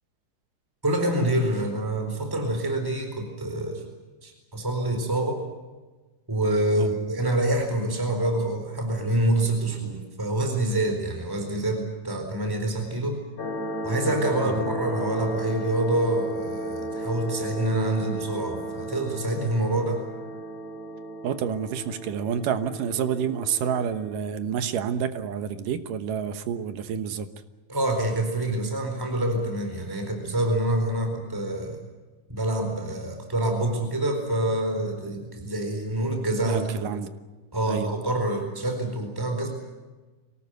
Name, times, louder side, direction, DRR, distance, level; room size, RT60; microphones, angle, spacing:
voice 1, 0.8-3.9 4.2-5.5 6.3-13.2 13.8-20.0 27.7-31.8 32.3-36.9 37.5-39.5, right 1 dB, 5° right, 4 dB, 4.1 m, -26 dB
sound 1, 13.4-24.2, right 1 dB, 50° left, 5.1 m, -34 dB
voice 2, 21.2-27.3 36.5-37.1 37.7-37.9, right 7 dB, 80° right, 10 dB, 2.8 m, -28 dB
25.0 x 18.5 x 9.3 m, 1.2 s
omnidirectional pair, 3.8 m